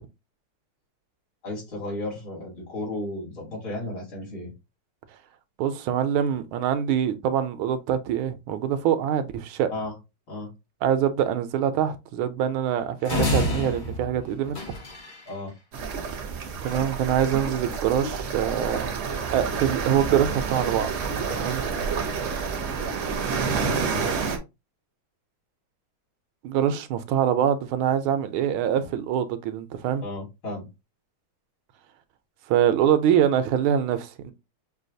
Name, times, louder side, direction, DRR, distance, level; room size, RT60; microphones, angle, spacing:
voice 1, 1.4-4.5 9.7-9.9 10.3-10.5 15.3-15.5 30.0-30.7, left 2 dB, 70° left, 3.3 m, -34 dB
voice 2, 5.6-9.7 10.8-14.6 16.6-18.9 19.3-20.9 21.4-21.6 26.4-30.0 32.5-34.3, right 9 dB, 80° right, 1.4 m, -24 dB
sound 1, 13.0-15.3, left 1 dB, 35° left, 0.8 m, -28 dB
sound 2, 15.7-24.4, right 5 dB, 60° right, 0.8 m, -29 dB
6.2 x 2.3 x 2.6 m
omnidirectional pair, 2.2 m